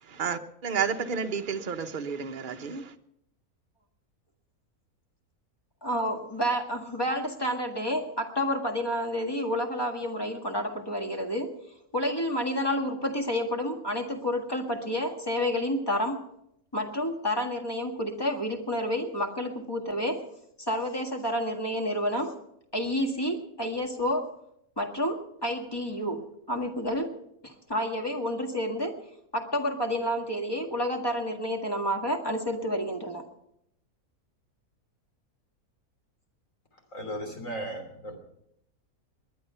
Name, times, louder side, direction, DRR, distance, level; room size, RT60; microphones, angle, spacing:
voice 1, 0.0-2.9, right 6 dB, 40° right, 6 dB, 1.0 m, -31 dB
voice 2, 5.8-11.5 11.9-16.2 16.7-20.2 20.6-22.3 22.7-24.3 24.8-26.2 26.5-27.1 27.4-29.0 29.3-33.2, equal, 15° left, 3 dB, 1.7 m, -29 dB
voice 3, 36.9-38.2, right 1 dB, 60° left, 3 dB, 3.5 m, -36 dB
20.5 x 10.5 x 5.6 m, 0.77 s
omnidirectional pair, 1.6 m